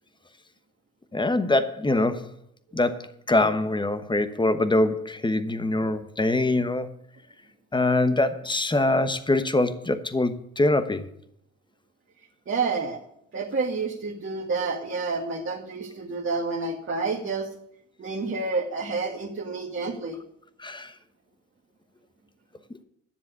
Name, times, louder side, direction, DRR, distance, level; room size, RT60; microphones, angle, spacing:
voice 1, 1.1-2.3 2.7-6.9 7.7-11.1 20.6-20.9, left 2 dB, 15° left, 11 dB, 1.1 m, -24 dB
voice 2, 12.5-13.1 13.3-17.5 18.0-20.2, right 4 dB, 40° right, -2 dB, 1.9 m, -29 dB
10.5 x 7.1 x 8.1 m, 0.74 s
cardioid pair, 90°, 30 cm